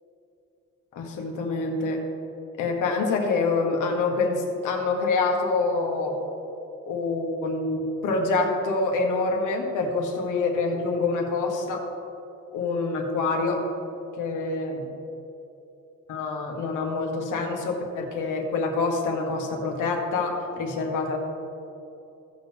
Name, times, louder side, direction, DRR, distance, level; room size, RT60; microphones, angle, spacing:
voice 1, 0.9-2.0 2.6-6.2 6.8-11.8 12.5-13.6 14.2-14.9 16.1-21.2, left 3 dB, 90° left, 2 dB, 1.6 m, -26 dB
16.0 x 6.4 x 3.6 m, 2.9 s
cardioid pair, 170°, 30 cm